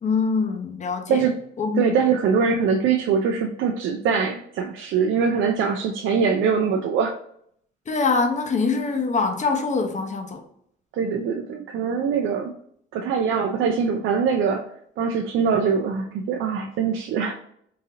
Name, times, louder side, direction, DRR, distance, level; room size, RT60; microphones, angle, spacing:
voice 1, 0.0-1.3 1.6-1.9 2.5-2.6 7.9-10.4, left 4 dB, 35° left, 0.7 m, -24 dB
voice 2, 1.8-7.1 10.9-12.5 12.9-14.7 15.0-17.3, right 6 dB, 80° right, 0.5 m, -23 dB
3.8 x 2.7 x 2.8 m
cardioid pair, 90°, 20 cm